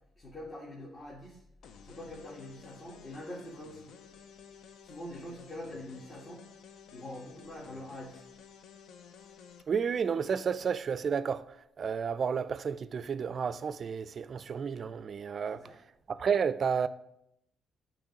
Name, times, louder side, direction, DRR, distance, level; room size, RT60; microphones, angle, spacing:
voice 1, 0.1-1.4 1.8-3.9 4.8-6.4 6.9-8.3 15.5-15.8, left 1 dB, 35° left, 1.6 m, -44 dB
sound 1, 1.6-9.6, left 7 dB, 75° left, 0.5 m, -53 dB
voice 2, 9.7-11.4 11.8-15.6 16.1-16.9, right 6 dB, 50° right, 0.3 m, -31 dB
8.7 x 3.1 x 5.9 m
cardioid pair, 90°, 0 cm